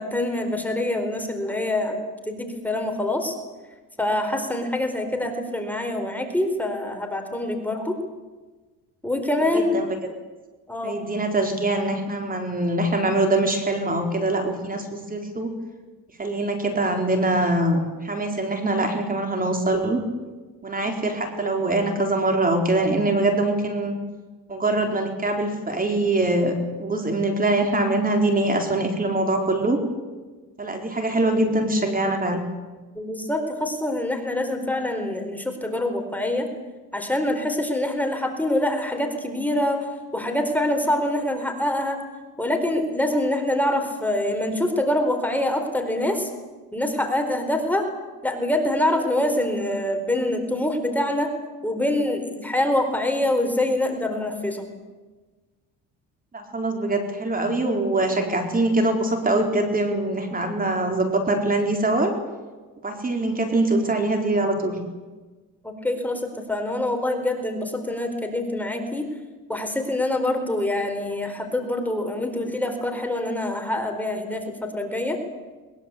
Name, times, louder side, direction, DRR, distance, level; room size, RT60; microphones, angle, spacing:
voice 1, 0.0-2.0 2.3-3.4 4.0-8.0 9.0-9.8 10.7-11.0 32.9-36.5 36.9-42.0 42.4-46.3 46.7-47.9 48.2-51.3 51.6-54.7 65.6-69.1 69.5-75.2, left 1 dB, 5° left, 4 dB, 4.3 m, -25 dB
voice 2, 9.4-10.1 10.8-15.6 16.2-20.0 20.6-23.9 24.5-29.8 30.6-32.4 56.3-62.1 62.8-64.8, right 2 dB, 25° right, 4 dB, 4.2 m, -23 dB
22.5 x 22.0 x 8.4 m, 1.3 s
cardioid pair, 105°, 36 cm